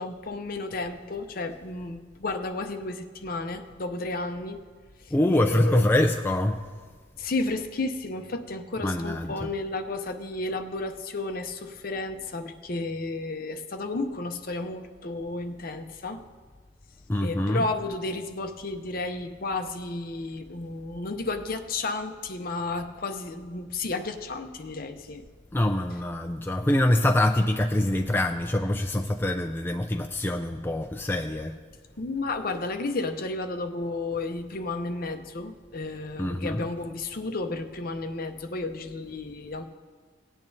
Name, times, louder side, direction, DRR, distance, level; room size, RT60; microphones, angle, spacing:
voice 1, 0.0-4.6 5.0-5.8 7.2-16.2 17.2-25.2 32.0-39.6, left 2 dB, 50° left, 6 dB, 0.7 m, -32 dB
voice 2, 5.1-6.6 8.8-9.3 17.1-17.6 25.5-31.5 36.2-36.7, left 1 dB, 10° left, 4 dB, 0.3 m, -24 dB
18.0 x 9.0 x 2.7 m, 1.5 s
head